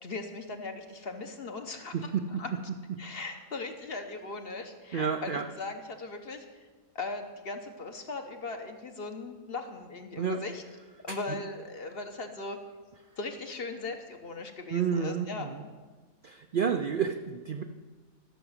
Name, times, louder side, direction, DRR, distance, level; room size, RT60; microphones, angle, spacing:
voice 1, 0.0-2.5 3.0-6.4 6.9-10.6 11.0-12.6 13.2-15.5, left 3 dB, 45° left, 5 dB, 1.1 m, -39 dB
voice 2, 1.9-2.4 4.9-5.5 10.2-10.4 11.1-11.4 14.7-15.6 16.2-17.6, right 6 dB, 65° right, 6 dB, 0.5 m, -30 dB
12.5 x 5.9 x 7.9 m, 1.4 s
omnidirectional pair, 1.5 m